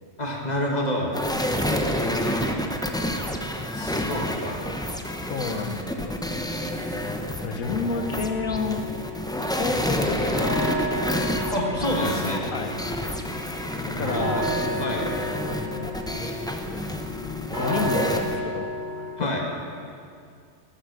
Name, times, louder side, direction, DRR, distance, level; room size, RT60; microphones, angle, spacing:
voice 1, 0.2-1.1 2.3-2.4 3.7-4.6 11.5-12.4 13.9-14.4 14.8-15.0 19.2-19.4, equal, 30° left, -1 dB, 1.8 m, -28 dB
tb field school, 1.1-18.4, left 1 dB, 5° left, 0.4 m, -29 dB
voice 2, 5.3-6.1 7.4-8.9 9.5-10.7 12.5-12.7 13.9-14.5 15.5-15.9 17.5-18.8 19.2-19.3, left 4 dB, 80° left, 7 dB, 1.4 m, -30 dB
sound 1, 7.8-19.1, equal, 80° right, 4.0 m, -33 dB
11.5 x 10.0 x 6.3 m, 2.3 s
omnidirectional pair, 1.4 m